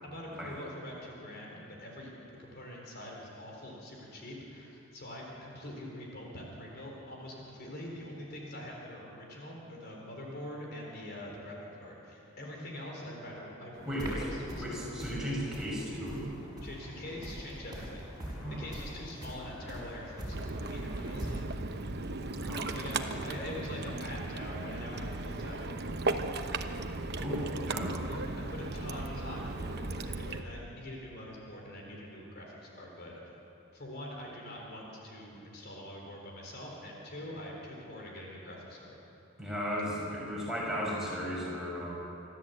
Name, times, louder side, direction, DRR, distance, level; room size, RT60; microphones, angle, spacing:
voice 1, 0.0-2.1 2.4-14.8 16.6-18.1 18.5-21.4 22.7-25.7 28.1-33.1 33.7-39.0, left 1 dB, 50° left, -2 dB, 3.9 m, -44 dB
sound 1, 13.7-21.3, equal, 20° right, 5.8 m, -43 dB
voice 2, 13.9-14.2 14.6-16.2 18.4-18.6 22.4-22.7 27.2-28.1 39.4-41.9, equal, ahead, -6 dB, 6.0 m, -35 dB
Ocean, 20.3-30.4, right 2 dB, 55° right, 1.0 m, -36 dB
26.0 x 13.5 x 8.1 m, 2.9 s
head